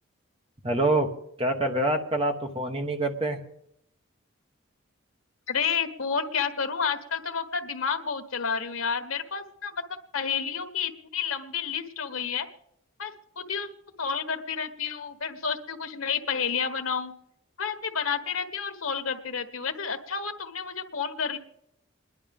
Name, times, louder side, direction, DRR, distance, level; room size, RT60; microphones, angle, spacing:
voice 1, 0.6-1.1 1.4-3.4, right 2 dB, 25° right, 4 dB, 1.2 m, -26 dB
voice 2, 5.5-9.8 10.1-12.5 13.0-13.7 14.0-17.1 17.6-21.4, left 6 dB, 90° left, 8 dB, 1.3 m, -30 dB
28.0 x 11.0 x 3.5 m, 0.78 s
head